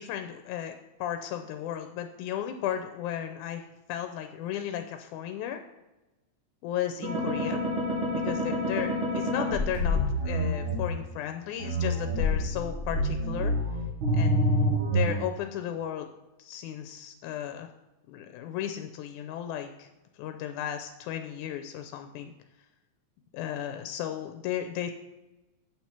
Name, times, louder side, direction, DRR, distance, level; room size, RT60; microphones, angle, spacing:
voice 1, 0.0-5.6 6.6-7.7 8.1-13.5 14.1-16.1 16.4-17.7 18.1-19.9 20.2-22.3 23.3-24.9, left 10 dB, 85° left, 7 dB, 2.0 m, -35 dB
sound 1, 7.0-10.8 11.6-15.2, equal, 90° right, 3.3 m, -27 dB
8.4 x 4.3 x 5.8 m, 1.1 s
omnidirectional pair, 3.4 m